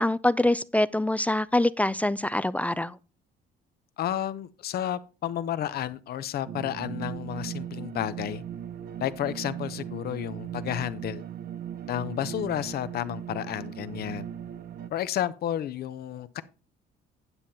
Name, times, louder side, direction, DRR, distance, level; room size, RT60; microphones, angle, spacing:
voice 1, 0.0-3.0, left 1 dB, 10° left, 0.4 m, -24 dB
voice 2, 4.0-8.4 9.0-11.2 11.9-14.3 14.9-16.4, left 11 dB, 60° left, 0.9 m, -31 dB
sound 1, 6.5-14.9, right 9 dB, 55° right, 0.9 m, -38 dB
9.8 x 7.6 x 4.2 m
cardioid pair, 105°, 19 cm